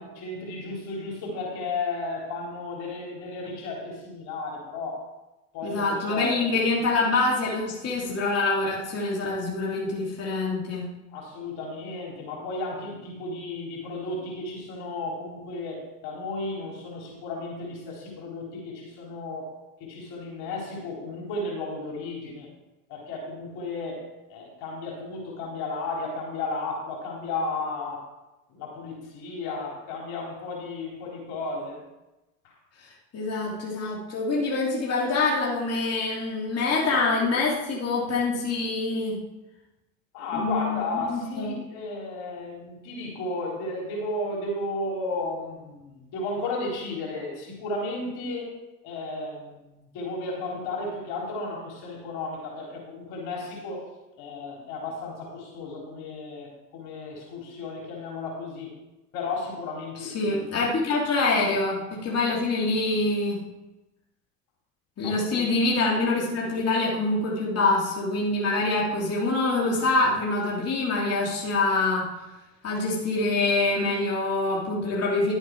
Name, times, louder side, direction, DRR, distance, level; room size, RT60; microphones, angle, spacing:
voice 1, 0.0-5.1 5.5-6.3 11.1-19.5 19.8-22.5 22.9-28.0 28.5-31.8 32.4-32.5 40.1-48.5 48.8-49.6 49.9-53.9 54.2-58.8 59.1-60.4 65.0-65.4, left 2 dB, 65° left, -2 dB, 3.9 m, -34 dB
voice 2, 5.6-10.9 32.8-39.2 40.3-41.6 60.0-63.4 65.0-72.0 72.6-75.3, left 3 dB, 35° left, -4 dB, 2.9 m, -25 dB
11.5 x 7.9 x 4.6 m, 1.0 s
hypercardioid pair, 85°, 41 cm